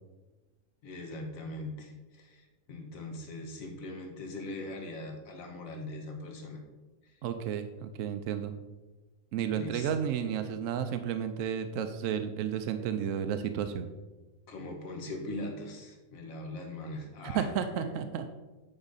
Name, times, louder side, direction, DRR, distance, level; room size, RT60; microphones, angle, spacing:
voice 1, 0.8-6.6 7.0-7.1 9.5-9.9 14.5-18.0, left 1 dB, 65° left, 2 dB, 1.6 m, -41 dB
voice 2, 7.2-8.5 9.3-13.9 17.2-18.3, right 8 dB, 70° right, 8 dB, 0.9 m, -32 dB
8.9 x 4.9 x 4.0 m, 1.2 s
omnidirectional pair, 1.6 m